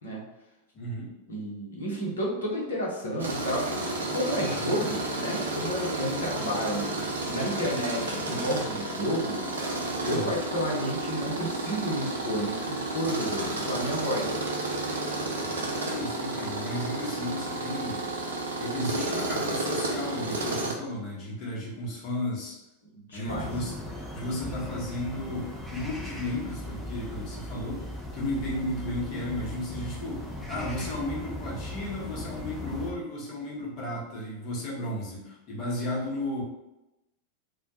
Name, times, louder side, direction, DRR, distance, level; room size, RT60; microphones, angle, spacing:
voice 1, 0.7-1.1 10.1-10.4 15.8-18.0 18.6-22.6 23.1-27.8 28.1-36.4, left 1 dB, 35° left, -3 dB, 0.8 m, -34 dB
voice 2, 1.3-9.4 10.0-14.4 23.1-23.5, equal, 70° left, -3 dB, 0.7 m, -31 dB
Tools, 3.2-20.7, right 2 dB, 70° right, 0.4 m, -32 dB
sound 1, 23.3-32.9, left 1 dB, ahead, 0.5 m, -38 dB
2.1 x 2.1 x 2.7 m, 0.94 s
figure-of-eight pair, 90°, 0 cm